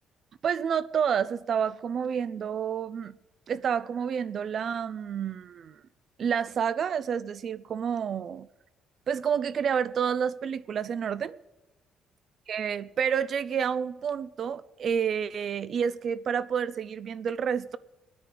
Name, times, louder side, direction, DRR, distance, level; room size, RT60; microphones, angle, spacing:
voice 1, 0.4-3.2 3.5-5.8 6.2-8.5 9.1-11.4 12.5-17.8, right 7 dB, 50° right, 0.6 m, -29 dB
21.0 x 9.6 x 5.0 m
cardioid pair, 125°, 0 cm